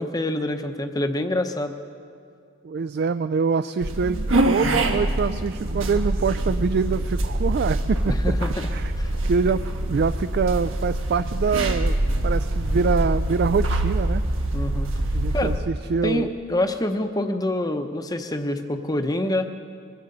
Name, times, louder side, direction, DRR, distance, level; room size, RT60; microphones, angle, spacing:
voice 1, 0.0-1.7 8.1-8.7 9.0-9.1 14.5-14.9 15.3-15.5 16.0-19.5, left 1 dB, 20° left, 7 dB, 0.8 m, -26 dB
voice 2, 2.6-8.1 8.7-8.9 9.2-12.0 12.2-14.3 15.1-16.3, right 5 dB, 50° right, 12 dB, 0.3 m, -25 dB
sound 1, 3.8-15.6, right 1 dB, 90° right, 1.2 m, -24 dB
22.5 x 16.0 x 4.0 m, 2.3 s
head